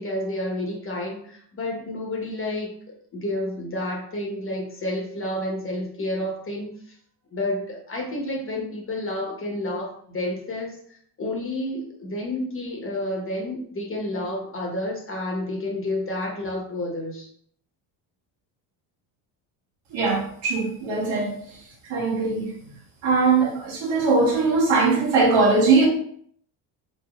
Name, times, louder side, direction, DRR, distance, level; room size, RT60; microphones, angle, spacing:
voice 1, 0.0-2.7 3.1-6.7 7.3-17.3, left 1 dB, 25° left, -1 dB, 1.1 m, -30 dB
voice 2, 19.9-21.3 21.9-22.5 23.0-25.9, right 3 dB, 80° right, -1 dB, 1.3 m, -20 dB
4.4 x 3.2 x 2.4 m, 0.62 s
cardioid pair, 115°, 48 cm